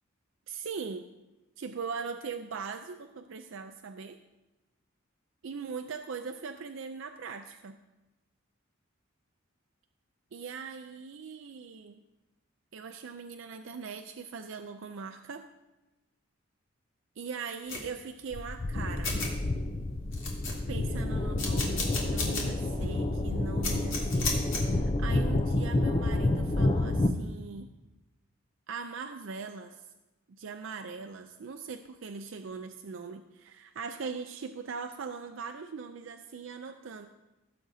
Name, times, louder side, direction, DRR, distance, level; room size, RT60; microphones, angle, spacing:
voice 1, 0.5-1.1 1.6-4.2 5.4-7.8 10.3-12.0 12.7-15.4 17.2-19.1 20.7-27.7 28.7-29.8 30.3-37.1, right 5 dB, 65° right, 7 dB, 0.4 m, -40 dB
sound 1, 17.7-17.9 18.7-18.8 19.0-19.3 19.8-19.9 20.1-20.8 21.4-22.4 22.8-22.9 23.6-24.6, left 4 dB, 65° left, 2.0 m, -33 dB
sound 2, 18.3-27.1, left 2 dB, 30° left, 0.5 m, -29 dB
16.5 x 7.6 x 2.7 m, 1.0 s
head